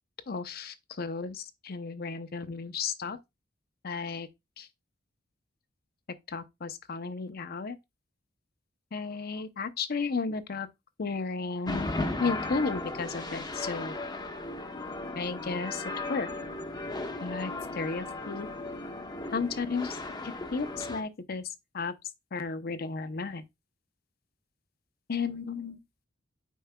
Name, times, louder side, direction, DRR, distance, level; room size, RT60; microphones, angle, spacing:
voice 1, 0.3-3.2 3.8-4.3 4.6-4.7 6.3-7.8 8.9-10.7 11.0-11.9 12.2-13.9 15.2-15.8 16.1-16.3 17.2-18.5 19.3-20.0 20.2-21.4 21.7-21.9 22.3-23.4 25.1-25.8, left 4 dB, 50° left, 0.6 m, -33 dB
sound 1, 11.6-21.0, left 2 dB, 20° left, 0.8 m, -36 dB
9.3 x 4.6 x 2.2 m
head